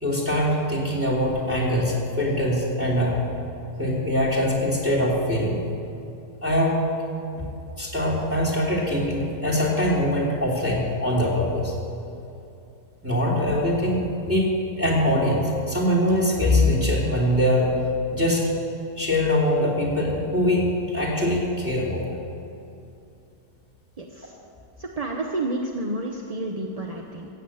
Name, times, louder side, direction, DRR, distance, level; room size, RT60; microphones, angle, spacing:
voice 1, 0.0-3.2 3.8-5.7 6.4-6.8 7.3-7.4 7.8-11.7 13.0-17.7 18.1-18.5 19.0-22.0, left 1 dB, 10° right, -5 dB, 2.9 m, -23 dB
voice 2, 24.0-24.3 24.8-27.3, right 2 dB, 35° right, 1 dB, 0.7 m, -30 dB
15.0 x 8.1 x 8.5 m, 2.7 s
omnidirectional pair, 1.7 m